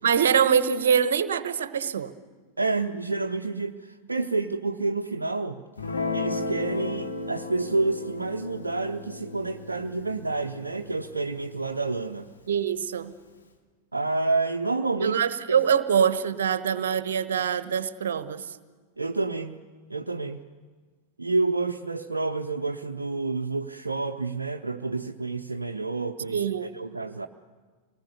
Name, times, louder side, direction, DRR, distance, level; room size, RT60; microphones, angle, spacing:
voice 1, 0.0-2.1 12.5-13.1 15.0-18.4 26.3-26.7, right 7 dB, 65° right, 14 dB, 1.1 m, -24 dB
voice 2, 2.6-5.6 6.1-12.3 13.9-15.2 15.5-15.6 19.0-19.6 19.9-20.4 21.2-27.3, right 3 dB, 80° right, 3 dB, 0.7 m, -29 dB
Guitar, 5.8-12.4, left 3 dB, 75° left, 2.4 m, -35 dB
26.5 x 19.5 x 8.2 m, 1.5 s
figure-of-eight pair, 90°, 0 cm